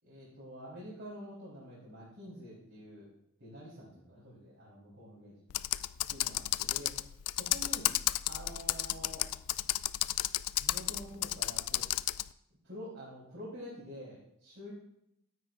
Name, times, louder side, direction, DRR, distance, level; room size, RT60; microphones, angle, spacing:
voice 1, 0.0-3.1 3.4-5.3 6.1-7.0 7.3-7.9 8.3-9.3 10.6-11.8 12.6-14.7, equal, 55° right, -7 dB, 3.6 m, -47 dB
Computer keyboard, 5.5-12.3, left 16 dB, 85° left, 0.3 m, -32 dB
13.0 x 9.5 x 2.4 m, 0.79 s
head